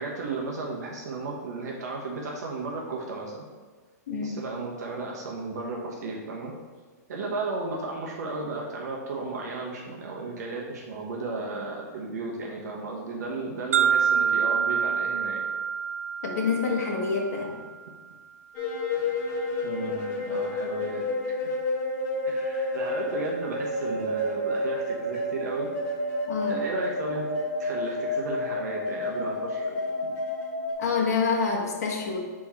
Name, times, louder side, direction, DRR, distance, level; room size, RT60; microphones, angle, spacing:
voice 1, 0.0-3.4 4.2-6.5 7.1-15.4 19.6-21.5 22.2-25.7 26.5-27.3 27.6-29.8 30.0-30.1, right 3 dB, 70° right, -2 dB, 1.2 m, -34 dB
sound 1, 13.7-17.7, right 7 dB, 50° right, 0.4 m, -26 dB
voice 2, 16.2-17.5 26.3-26.6 30.8-32.2, left 5 dB, 60° left, -1 dB, 1.3 m, -27 dB
sound 2, 18.5-30.7, left 2 dB, 30° left, 1.4 m, -30 dB
4.4 x 4.3 x 5.8 m, 1.4 s
hypercardioid pair, 165°, 9 cm